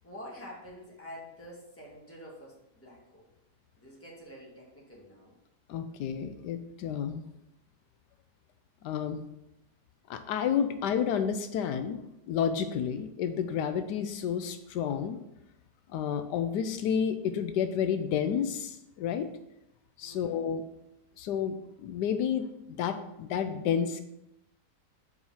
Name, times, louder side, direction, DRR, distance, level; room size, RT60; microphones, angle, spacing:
voice 1, 0.0-3.2 3.8-5.3 20.0-20.4, equal, 10° left, -4 dB, 1.7 m, -47 dB
voice 2, 5.7-7.2 8.8-9.2 10.1-15.2 15.9-19.3 20.0-20.6 21.2-24.0, left 8 dB, 85° left, 9 dB, 1.2 m, -30 dB
5.5 x 4.9 x 5.5 m, 0.85 s
omnidirectional pair, 1.8 m